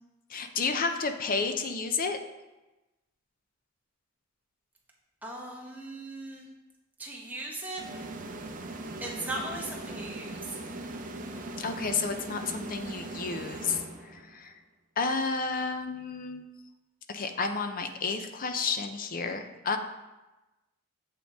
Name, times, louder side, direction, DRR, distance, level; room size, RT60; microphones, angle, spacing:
voice 1, 0.3-2.2 11.6-13.8 14.3-14.5 15.0-16.4 17.1-19.8, left 4 dB, 45° left, 7 dB, 0.6 m, -31 dB
voice 2, 5.2-6.5 7.0-7.8 9.0-10.4, right 2 dB, 10° right, -3 dB, 1.3 m, -38 dB
sound 1, 7.8-14.4, right 2 dB, 40° right, 0.7 m, -40 dB
7.5 x 6.2 x 3.6 m, 1.1 s
head